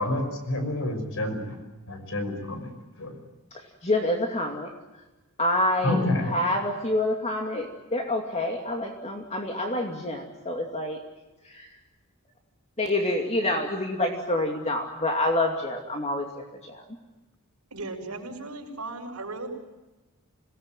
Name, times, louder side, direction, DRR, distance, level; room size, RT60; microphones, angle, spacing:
voice 1, 0.0-2.7 3.0-3.2 5.8-6.4, left 1 dB, 60° left, 6 dB, 6.0 m, -29 dB
voice 2, 3.8-4.7 5.4-6.0 6.3-11.0 11.5-11.7 12.8-16.8, left 1 dB, 30° left, 2 dB, 2.6 m, -27 dB
voice 3, 17.7-19.5, right 2 dB, 75° right, 0 dB, 5.9 m, -36 dB
26.5 x 18.5 x 9.2 m, 1.1 s
head